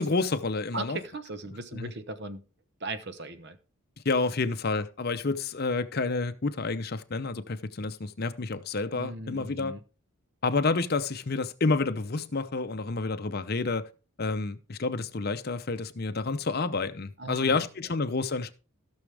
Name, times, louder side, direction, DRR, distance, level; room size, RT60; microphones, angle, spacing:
voice 1, 0.0-1.0 1.7-1.9 4.0-9.7 10.4-13.9 14.2-18.5, left 3 dB, 45° left, 0.7 m, -29 dB
voice 2, 0.7-2.4 2.8-3.6 8.9-9.8 17.2-17.6, right 2 dB, 50° right, 1.0 m, -38 dB
16.0 x 6.2 x 3.4 m
head